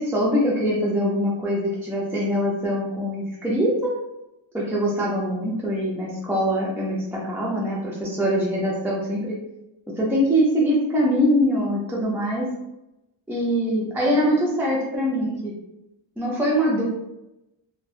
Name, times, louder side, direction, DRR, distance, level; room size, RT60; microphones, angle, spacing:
voice 1, 0.0-4.0 4.5-9.4 9.9-12.5 13.3-15.5 16.2-16.9, equal, 5° right, -5 dB, 0.3 m, -23 dB
2.7 x 2.1 x 2.3 m, 0.91 s
wide cardioid pair, 150°, 48 cm